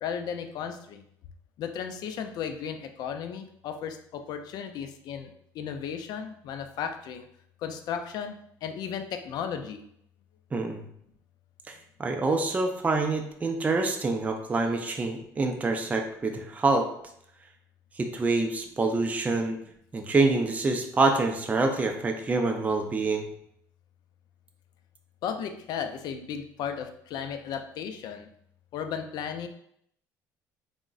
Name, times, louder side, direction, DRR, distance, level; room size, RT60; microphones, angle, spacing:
voice 1, 0.0-1.0 1.6-7.3 7.6-8.4 8.6-9.8 25.2-28.3 28.7-29.5, left 7 dB, 65° left, 7 dB, 0.4 m, -35 dB
voice 2, 10.5-10.8 11.7-11.8 12.0-16.9 18.0-19.6 19.9-23.3, right 3 dB, 20° right, 3 dB, 0.4 m, -26 dB
3.5 x 2.1 x 2.4 m, 0.70 s
supercardioid pair, 90°, 8 cm